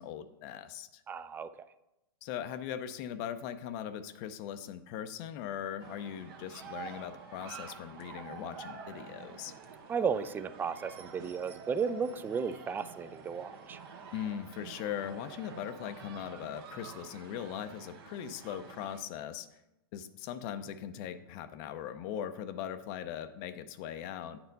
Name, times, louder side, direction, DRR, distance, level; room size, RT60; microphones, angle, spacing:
voice 1, 0.0-1.0 2.2-9.5 14.1-19.6 19.9-24.4, left 9 dB, 50° left, 10 dB, 0.5 m, -40 dB
voice 2, 1.1-1.5 9.9-13.8, right 6 dB, 15° right, 13 dB, 0.3 m, -34 dB
sound 1, 5.8-19.0, right 6 dB, 65° right, 1.1 m, -48 dB
9.3 x 4.4 x 4.0 m, 0.92 s
hypercardioid pair, 115°, 13 cm